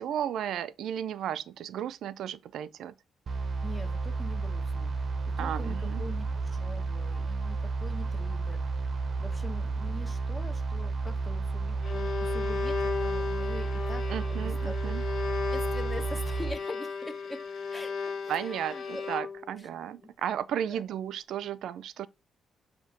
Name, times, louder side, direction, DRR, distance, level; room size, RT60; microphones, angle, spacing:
voice 1, 0.0-2.9 5.4-6.0 14.1-15.0 18.3-22.1, right 10 dB, 75° right, 0.5 m, -34 dB
sound 1, 3.3-16.6, right 4 dB, 40° right, 0.8 m, -32 dB
voice 2, 3.6-14.9 15.5-17.4 17.7-19.0 19.6-19.7 20.0-20.1 20.7-20.8, left 1 dB, 15° left, 1.3 m, -44 dB
Bowed string instrument, 11.6-19.6, left 5 dB, 65° left, 1.1 m, -35 dB
8.2 x 2.8 x 5.8 m
cardioid pair, 125°, 0 cm